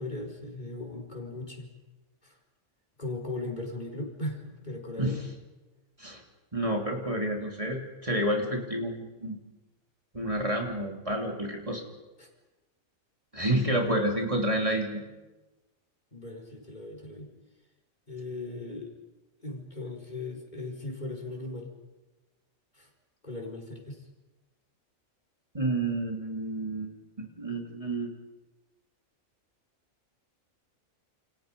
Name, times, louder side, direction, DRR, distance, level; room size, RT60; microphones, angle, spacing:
voice 1, 0.0-1.7 2.2-2.4 3.0-5.2 12.2-12.3 13.8-14.3 16.1-17.3 18.1-18.9 19.4-21.7 22.7-22.9 23.2-24.1, left 2 dB, 35° left, 2 dB, 4.8 m, -38 dB
voice 2, 6.5-9.4 10.1-11.8 13.3-15.0 25.5-28.1, right 1 dB, 25° right, 1 dB, 3.1 m, -29 dB
29.5 x 28.5 x 5.4 m, 1.1 s
omnidirectional pair, 1.4 m